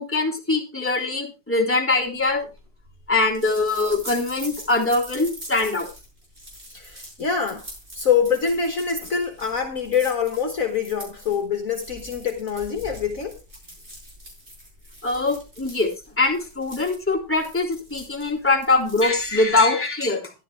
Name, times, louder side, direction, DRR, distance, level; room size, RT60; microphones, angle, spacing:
voice 1, 0.0-2.5 3.1-5.9 15.0-20.3, left 3 dB, 5° left, 3.2 m, -22 dB
sound 1, 2.1-19.6, equal, 35° right, 7.7 m, -43 dB
voice 2, 6.7-7.7 7.9-13.4, left 6 dB, 50° left, 1.7 m, -25 dB
14.0 x 11.0 x 3.3 m
omnidirectional pair, 1.9 m